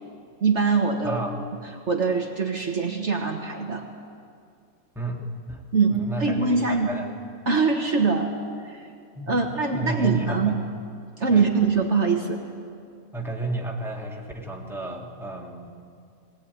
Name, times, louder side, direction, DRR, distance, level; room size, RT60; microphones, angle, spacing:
voice 1, 0.4-1.2 1.9-3.9 5.7-6.9 7.5-8.3 8.6-8.9 9.3-10.6 11.2-12.4, right 4 dB, 50° right, 2 dB, 1.8 m, -23 dB
voice 2, 4.9-5.7 5.9-7.1 9.1-9.4 9.7-10.6 11.3-11.5 13.1-15.9, right 2 dB, ahead, -1 dB, 2.2 m, -32 dB
20.0 x 19.0 x 9.4 m, 2.3 s
omnidirectional pair, 1.6 m